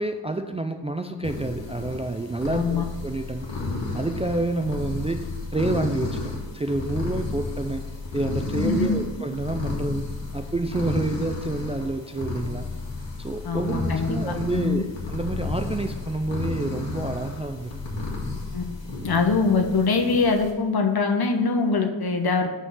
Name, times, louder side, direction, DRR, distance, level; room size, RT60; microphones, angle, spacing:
voice 1, 0.0-3.5 3.9-7.9 8.1-10.1 10.3-12.6 13.2-18.1, right 2 dB, 15° right, 6 dB, 0.3 m, -28 dB
sound 1, 1.2-20.5, left 3 dB, 85° left, 2.2 m, -33 dB
voice 2, 2.5-2.8 8.5-9.1 13.4-14.2 14.5-14.8 18.5-18.6 19.0-22.5, left 4 dB, 55° left, 4 dB, 1.0 m, -23 dB
5.5 x 5.5 x 6.4 m, 1.2 s
wide cardioid pair, 90°, 44 cm